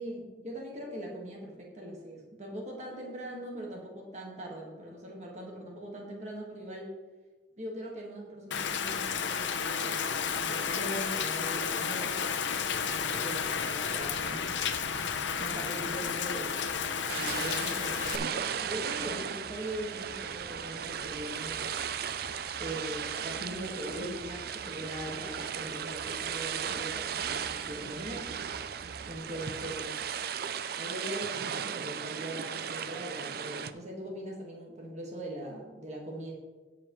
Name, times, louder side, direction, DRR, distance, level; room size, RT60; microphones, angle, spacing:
voice 1, 0.0-6.9 7.6-12.2 12.8-14.4 15.4-16.6 17.1-21.7 22.6-28.3 29.1-30.0 30.8-36.3, right 1 dB, 40° right, -1 dB, 1.7 m, -41 dB
Rain, 8.5-18.2, left 6 dB, 75° left, 0.7 m, -32 dB
sound 1, 14.1-29.8, right 2 dB, 75° right, 2.0 m, -52 dB
sound 2, 17.1-33.7, right 8 dB, 55° right, 0.4 m, -36 dB
17.0 x 6.0 x 3.1 m, 1.2 s
head